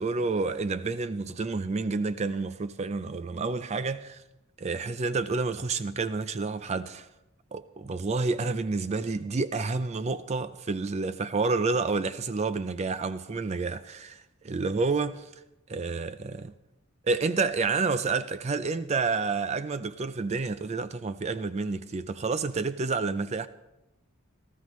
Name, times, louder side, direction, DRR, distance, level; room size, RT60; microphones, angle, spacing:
voice 1, 0.0-4.2 4.6-7.1 7.5-15.3 15.7-16.5 17.0-23.5, right 4 dB, 30° right, 0.4 m, -29 dB
19.0 x 14.0 x 3.1 m
head